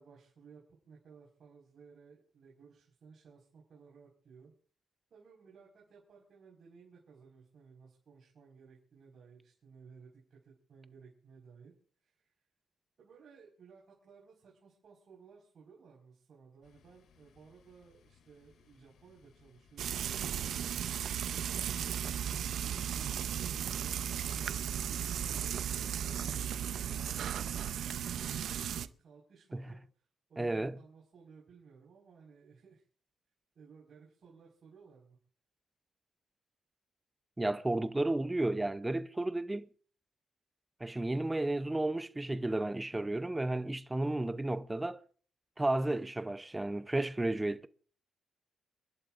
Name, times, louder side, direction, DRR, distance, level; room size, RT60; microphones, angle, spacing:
voice 1, 0.0-4.5 5.1-11.7 12.0-12.3 13.0-27.2 28.0-32.8 33.5-35.2, right 5 dB, 55° right, 4.9 m, -58 dB
sound 1, 16.6-22.0, left 6 dB, 75° left, 2.4 m, -66 dB
Frying (food), 19.8-28.9, right 9 dB, 70° right, 0.6 m, -35 dB
voice 2, 30.4-30.8 37.4-39.7 40.8-45.0 45.6-47.7, right 2 dB, 15° right, 0.6 m, -33 dB
29.5 x 11.5 x 2.5 m
cardioid pair, 105°, 0 cm